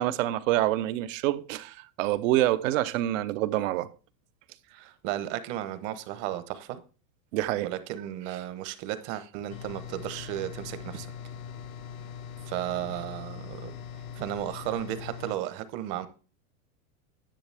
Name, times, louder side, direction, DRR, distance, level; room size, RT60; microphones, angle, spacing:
voice 1, 0.0-3.9 7.3-7.7, right 14 dB, 65° right, 0.8 m, -26 dB
voice 2, 4.7-6.8 7.6-11.1 12.5-13.7 14.1-16.1, right 13 dB, 45° right, 1.1 m, -34 dB
sound 1, 9.5-15.4, left 7 dB, 80° left, 0.9 m, -41 dB
10.0 x 7.6 x 3.4 m
supercardioid pair, 150°, 42 cm